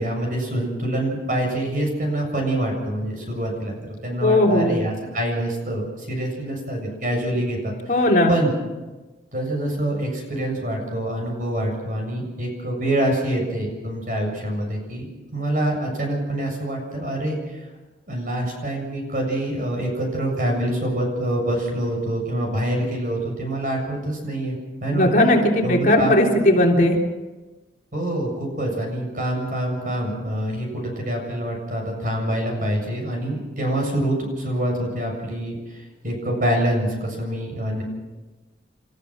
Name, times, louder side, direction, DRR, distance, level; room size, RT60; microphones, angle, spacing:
voice 1, 0.0-3.7 4.0-7.8 8.3-8.5 9.3-15.1 15.3-17.6 18.1-25.1 25.6-26.1 27.9-37.8, right 1 dB, 50° right, 1 dB, 7.4 m, -26 dB
voice 2, 4.2-4.7 7.9-8.3 24.9-27.0, left 1 dB, 45° left, -1 dB, 3.3 m, -17 dB
30.0 x 14.5 x 6.1 m, 1.2 s
head